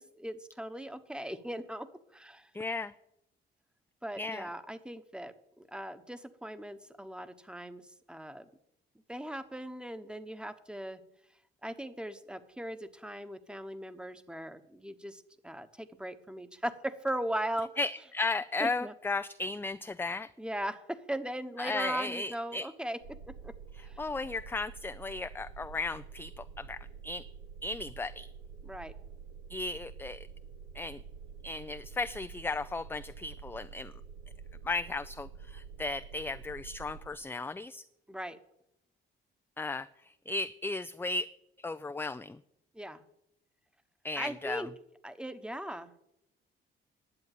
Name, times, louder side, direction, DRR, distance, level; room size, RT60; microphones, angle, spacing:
voice 1, 0.0-2.5 4.0-8.4 9.1-11.0 11.6-17.7 18.6-18.9 20.4-23.5 23.8-24.0 28.6-28.9 38.1-38.4 42.7-43.0 44.2-44.7 45.0-45.9, right 1 dB, 5° right, 12 dB, 1.2 m, -39 dB
voice 2, 2.5-2.9 4.2-4.5 17.8-20.3 21.6-22.7 24.0-27.3 27.6-28.3 29.5-30.3 30.7-31.0 31.4-33.9 34.6-37.8 39.6-41.3 41.6-42.4 44.0-44.7, left 3 dB, 10° left, 11 dB, 0.4 m, -35 dB
sound 1, 23.0-37.1, right 6 dB, 90° right, 1.7 m, -48 dB
11.0 x 8.0 x 9.2 m, 0.80 s
cardioid pair, 90°, 20 cm